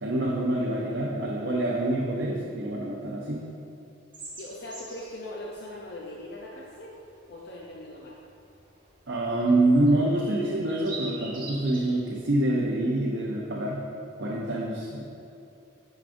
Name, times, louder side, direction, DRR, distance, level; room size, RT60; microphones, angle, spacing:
voice 1, 0.0-3.4 9.1-13.9 14.2-15.0, right 1 dB, 55° right, -3 dB, 0.6 m, -26 dB
sound 1, 4.1-12.8, right 3 dB, 20° right, 1.3 m, -46 dB
voice 2, 4.4-7.0 7.3-8.2, left 1 dB, 55° left, -3 dB, 0.5 m, -40 dB
9.4 x 4.7 x 2.6 m, 2.7 s
head